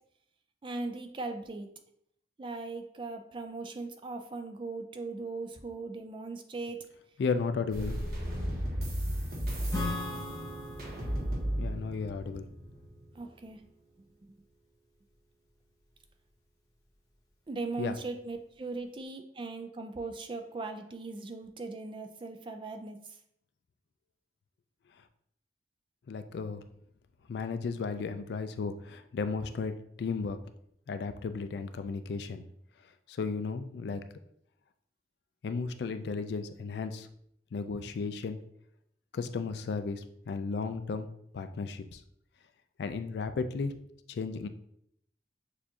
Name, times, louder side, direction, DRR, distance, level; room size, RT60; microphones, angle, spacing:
voice 1, 0.6-1.7 2.4-6.9 9.8-9.9 13.1-13.6 17.5-23.0, right 3 dB, 30° right, 6 dB, 0.4 m, -39 dB
voice 2, 7.2-8.0 11.6-12.5 17.8-18.0 26.1-26.6 27.3-30.4 30.9-32.4 33.1-34.0 35.4-37.1 37.5-38.4 39.1-41.1 41.3-42.0 42.8-43.7 44.1-44.5, left 4 dB, 65° left, 10 dB, 0.3 m, -34 dB
sound 1, 7.7-13.2, equal, 55° right, 1.2 m, -35 dB
Acoustic guitar / Strum, 9.7-13.3, left 2 dB, 20° left, 0.8 m, -40 dB
6.6 x 2.5 x 2.8 m, 0.71 s
head